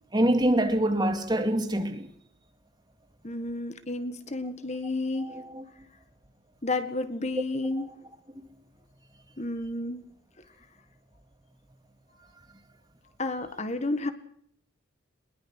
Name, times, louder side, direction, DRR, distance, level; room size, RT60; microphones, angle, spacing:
voice 1, 0.1-2.1 5.2-5.6 7.8-7.9, right 1 dB, 20° right, 2.6 m, -25 dB
voice 2, 3.2-5.4 6.6-7.9 9.4-10.0 13.2-14.1, left 2 dB, 35° left, 1.7 m, -31 dB
21.5 x 21.5 x 6.3 m
head